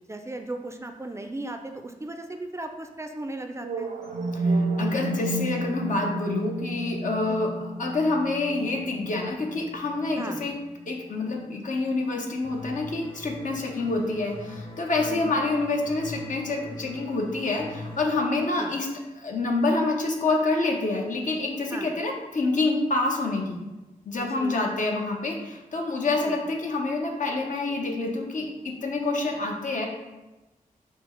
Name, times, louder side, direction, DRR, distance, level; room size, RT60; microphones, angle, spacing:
voice 1, 0.1-3.9 7.3-7.5 10.2-10.4 15.0-15.3 18.6-18.7 21.7-21.9 24.2-24.5 26.2-26.4, right 2 dB, 20° right, 5 dB, 0.3 m, -36 dB
sound 1, 3.6-11.6, right 2 dB, 90° right, 0.4 m, -31 dB
voice 2, 4.3-7.5 7.8-10.5 10.9-18.9 19.2-23.6 24.1-29.9, left 2 dB, 65° left, 1 dB, 0.7 m, -27 dB
sound 2, 12.4-18.0, left 2 dB, 40° left, 0.9 m, -42 dB
4.4 x 2.0 x 4.3 m, 1.1 s
cardioid pair, 60°, 14 cm